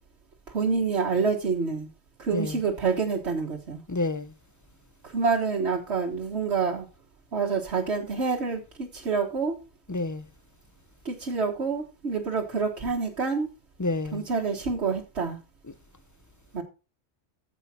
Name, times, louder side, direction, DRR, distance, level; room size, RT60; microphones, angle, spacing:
voice 1, 0.5-1.9 2.2-3.8 5.0-6.9 7.3-9.6 11.0-13.5 14.1-15.4 16.5-16.6, right 5 dB, 85° right, 1.7 m, -27 dB
voice 2, 3.9-4.3 9.9-10.3 13.8-14.2, left 3 dB, 25° left, 0.4 m, -29 dB
14.5 x 5.5 x 4.2 m
omnidirectional pair, 1.1 m